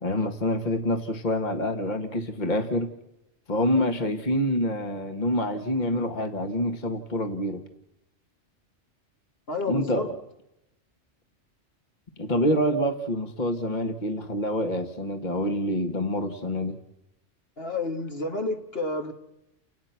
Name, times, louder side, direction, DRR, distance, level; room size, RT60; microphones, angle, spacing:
voice 1, 0.0-2.9 3.5-7.6 9.7-10.1 12.2-16.8, left 1 dB, 40° left, 7 dB, 1.9 m, -26 dB
voice 2, 9.5-10.1 17.6-19.1, left 2 dB, 55° left, 4 dB, 2.0 m, -30 dB
30.0 x 19.0 x 6.0 m, 0.89 s
omnidirectional pair, 1.2 m